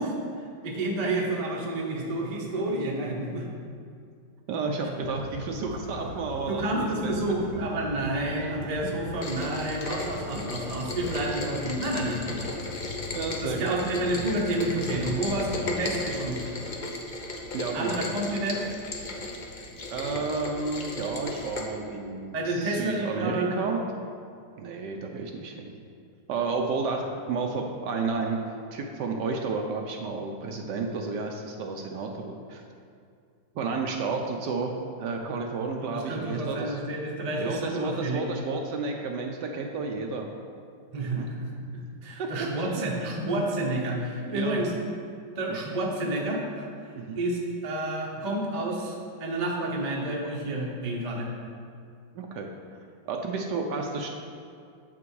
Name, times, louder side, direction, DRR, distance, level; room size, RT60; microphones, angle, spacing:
voice 1, 0.0-3.5 6.5-12.5 13.4-16.4 17.7-18.7 22.3-23.6 35.8-38.3 40.9-44.7 45.4-46.7 47.1-48.9 49.2-51.3, right 1 dB, 30° right, -1 dB, 0.7 m, -30 dB
voice 2, 4.5-7.1 12.3-12.4 13.1-13.8 17.5-18.0 19.9-23.8 24.6-25.8 26.3-32.6 33.5-36.8 37.4-40.3 41.1-41.3 42.2-42.3 42.7-42.8 44.3-44.6 45.5-45.6 46.9-47.2 52.1-52.5 53.1-54.1, right 4 dB, 70° right, 2 dB, 1.2 m, -31 dB
sound 1, 5.0-16.6, left 4 dB, 65° left, 1.0 m, -42 dB
Rain, 9.2-21.6, left 2 dB, 90° left, 0.4 m, -36 dB
7.6 x 6.1 x 4.7 m, 2.3 s
omnidirectional pair, 2.1 m